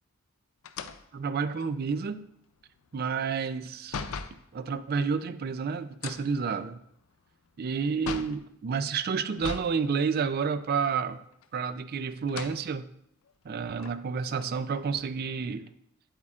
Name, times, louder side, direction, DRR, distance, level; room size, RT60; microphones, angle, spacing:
sound 1, 0.6-4.4 5.9-8.5 9.3-9.8 10.1-10.2 11.3-11.8 12.2-12.6 13.3-13.4 13.7-15.1, left 5 dB, 75° left, 0.5 m, -40 dB
voice 1, 1.1-2.2 2.9-4.1 4.5-6.8 7.6-11.2 11.5-12.9 13.4-15.7, right 5 dB, 45° right, 12 dB, 0.4 m, -30 dB
8.6 x 8.1 x 2.4 m, 0.75 s
head